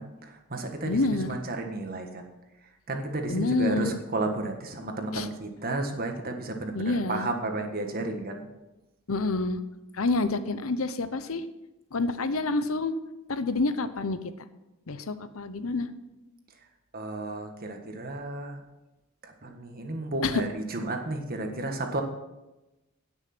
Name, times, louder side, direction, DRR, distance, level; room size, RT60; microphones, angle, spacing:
voice 1, 0.0-2.3 2.9-8.5 16.9-18.6 19.2-22.0, right 2 dB, 45° right, 4 dB, 1.6 m, -32 dB
voice 2, 0.9-1.3 3.3-4.0 5.1-5.3 6.7-7.3 9.1-9.6 9.9-11.5 11.9-12.9 13.3-14.2 14.9-15.9 20.2-20.4, left 3 dB, 75° left, 11 dB, 0.8 m, -28 dB
17.5 x 6.4 x 6.1 m, 1.0 s
head